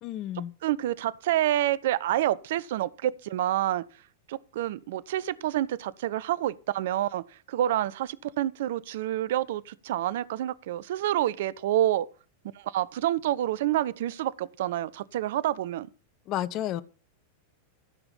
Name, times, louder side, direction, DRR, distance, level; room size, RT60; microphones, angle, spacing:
voice 1, 0.0-0.5 16.3-16.8, left 12 dB, 35° left, 0.8 m, -31 dB
voice 2, 0.6-3.8 4.3-12.1 12.5-15.9, right 13 dB, 55° right, 0.6 m, -28 dB
15.0 x 6.8 x 5.8 m
figure-of-eight pair, 90°, 0 cm